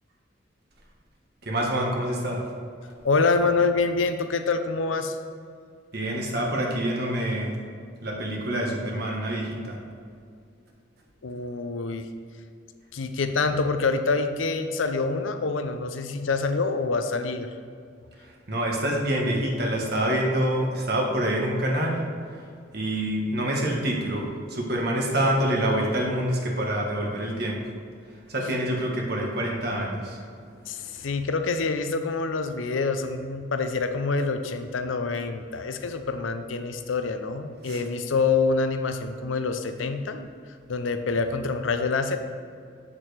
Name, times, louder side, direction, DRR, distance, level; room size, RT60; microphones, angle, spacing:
voice 1, 1.4-2.4 5.9-7.5 8.0-9.8 18.2-22.0 22.7-27.6 28.3-30.2 30.9-31.1 37.6-37.8, right 1 dB, 55° right, -1 dB, 1.4 m, -26 dB
voice 2, 3.0-5.2 11.2-12.1 12.9-17.5 30.7-40.3 40.7-42.2, left 4 dB, 85° left, 8 dB, 0.6 m, -26 dB
8.3 x 7.2 x 3.4 m, 2.3 s
head